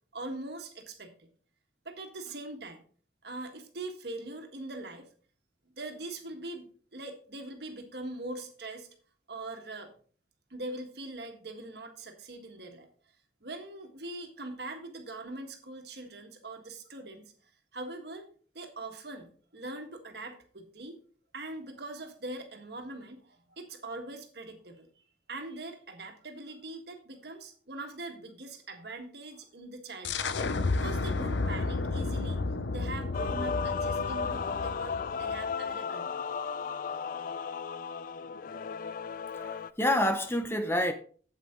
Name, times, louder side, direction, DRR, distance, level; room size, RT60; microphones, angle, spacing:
voice 1, 0.1-1.3 1.8-2.8 3.2-5.1 5.7-8.9 9.3-9.9 10.5-12.9 13.4-18.2 18.5-21.0 21.3-24.9 25.3-32.4 32.7-36.1, right 2 dB, 65° right, 1.6 m, -42 dB
sound 1, 30.0-35.5, left 3 dB, 90° left, 0.6 m, -32 dB
Male singing / Female singing / Musical instrument, 33.1-39.7, left 5 dB, 50° left, 0.3 m, -35 dB
voice 2, 39.3-40.9, left 1 dB, 15° left, 0.7 m, -28 dB
8.4 x 8.0 x 3.8 m
head